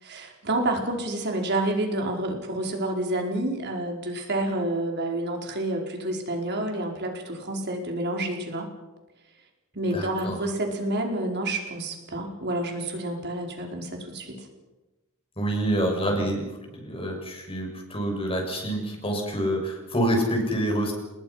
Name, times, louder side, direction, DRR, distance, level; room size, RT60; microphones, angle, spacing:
voice 1, 0.0-8.7 9.7-14.5 15.8-16.1, right 1 dB, 55° right, 2 dB, 4.8 m, -29 dB
voice 2, 9.9-10.4 15.4-20.9, right 1 dB, 25° left, 2 dB, 6.5 m, -27 dB
29.5 x 20.0 x 5.8 m, 1.1 s
head